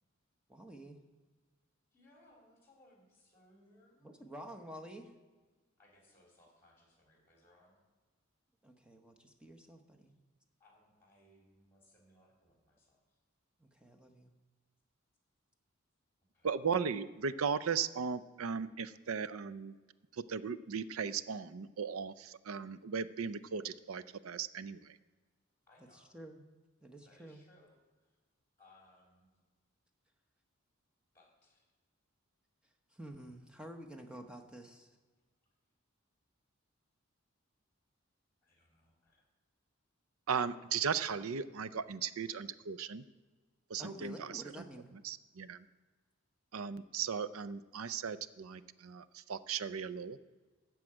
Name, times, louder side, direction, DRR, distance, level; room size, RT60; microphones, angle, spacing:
voice 1, 0.5-1.0 4.0-5.1 8.6-10.1 13.6-14.3 25.9-26.4 26.8-27.4 32.9-34.9 43.8-44.9, right 1 dB, 5° right, 3 dB, 1.0 m, -50 dB
voice 2, 1.9-4.1 5.8-7.8 10.6-13.0 16.3-16.5 25.7-26.2 27.0-27.7 28.6-29.3 31.1-31.6 38.4-39.2, left 1 dB, 10° left, -1 dB, 3.5 m, -65 dB
voice 3, 16.4-19.8 20.1-25.0 40.3-43.0 43.7-44.6 45.0-45.7 46.5-50.2, right 6 dB, 75° right, 15 dB, 0.5 m, -37 dB
14.0 x 4.8 x 8.8 m, 1.3 s
head